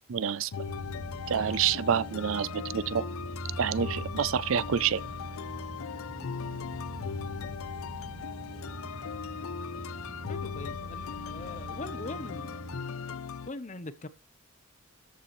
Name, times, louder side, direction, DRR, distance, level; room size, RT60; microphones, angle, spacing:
voice 1, 0.1-0.5 1.3-3.0 3.6-5.0, right 8 dB, 65° right, 0.4 m, -28 dB
sound 1, 0.5-13.5, left 6 dB, 70° left, 0.5 m, -39 dB
sound 2, 0.6-12.8, right 1 dB, 90° right, 4.3 m, -42 dB
voice 2, 10.3-12.7 13.5-14.1, left 2 dB, 35° left, 0.8 m, -41 dB
14.0 x 6.8 x 3.1 m
head